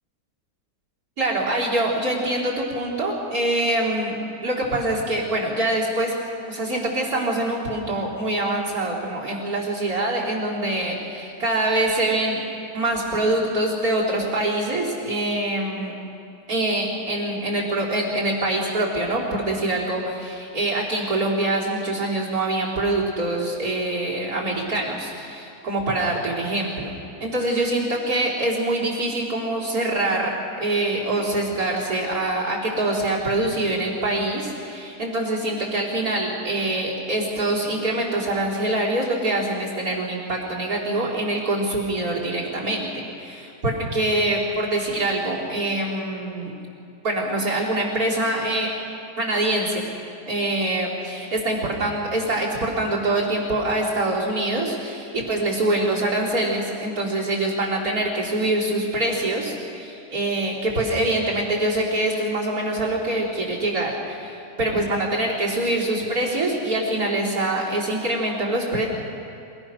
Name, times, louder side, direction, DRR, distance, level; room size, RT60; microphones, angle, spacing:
voice 1, 1.2-6.1 6.5-12.4 12.7-15.9 16.5-42.9 43.2-46.5 47.0-48.7 49.2-49.8 50.3-68.9, right 1 dB, 65° right, -7 dB, 4.2 m, -24 dB
28.0 x 17.5 x 6.3 m, 2.6 s
omnidirectional pair, 1.7 m